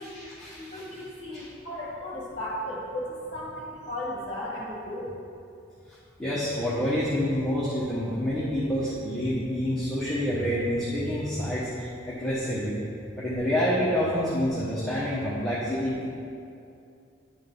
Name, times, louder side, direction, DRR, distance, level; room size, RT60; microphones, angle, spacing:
voice 1, 0.0-0.8 1.3-1.5 6.2-11.7 12.1-12.7 13.2-16.1, equal, ahead, -10 dB, 1.0 m, -28 dB
voice 2, 0.6-5.1, left 1 dB, 30° left, -7 dB, 1.6 m, -35 dB
10.0 x 3.8 x 5.4 m, 2.6 s
head